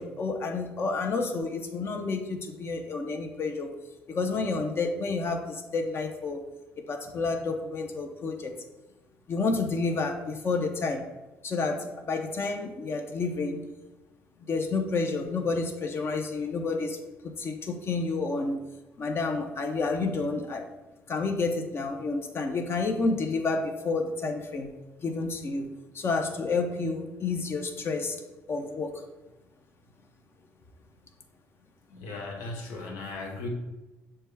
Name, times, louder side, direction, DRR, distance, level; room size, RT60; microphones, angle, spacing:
voice 1, 0.0-3.7 4.1-6.4 6.9-8.5 9.3-11.0 11.4-13.7 14.5-17.0 17.2-18.6 19.0-20.6 21.1-24.7 25.0-25.7 25.9-28.2 28.5-28.9, left 3 dB, 45° left, 4 dB, 0.7 m, -30 dB
voice 2, 31.9-33.5, left 2 dB, 85° left, 1 dB, 0.9 m, -37 dB
6.7 x 2.3 x 3.3 m, 1.1 s
supercardioid pair, 75°, 6 cm